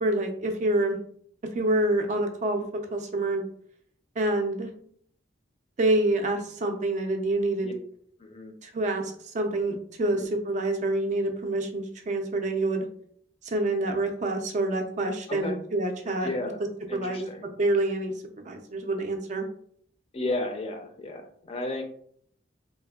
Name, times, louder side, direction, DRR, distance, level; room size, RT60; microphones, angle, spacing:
voice 1, 0.0-1.0 1.5-2.6 2.9-3.4 4.2-4.7 5.8-7.7 8.6-12.8 13.4-16.3 16.9-17.3 17.6-19.5, right 2 dB, 40° right, 4 dB, 0.4 m, -27 dB
voice 2, 8.2-8.5 10.0-10.3 15.3-15.6 16.2-16.6 16.9-17.5 20.1-21.8, left 2 dB, 35° left, 5 dB, 0.4 m, -33 dB
3.3 x 2.1 x 2.3 m, 0.62 s
head